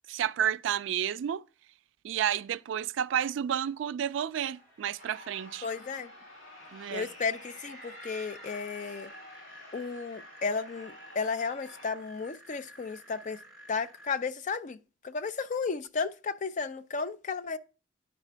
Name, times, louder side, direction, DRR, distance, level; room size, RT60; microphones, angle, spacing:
voice 1, 0.1-1.4 2.0-5.7 6.7-7.1, right 9 dB, 70° right, 0.3 m, -31 dB
sound 1, 4.1-9.1, right 1 dB, 15° left, 4.2 m, -62 dB
sound 2, 5.0-11.9, left 1 dB, 80° left, 2.5 m, -50 dB
voice 2, 5.6-6.1 6.9-9.1 9.7-13.4 13.7-14.8 15.0-17.6, left 5 dB, 40° left, 0.4 m, -33 dB
sound 3, 6.3-14.1, right 1 dB, 5° right, 2.9 m, -52 dB
9.8 x 5.0 x 3.3 m
head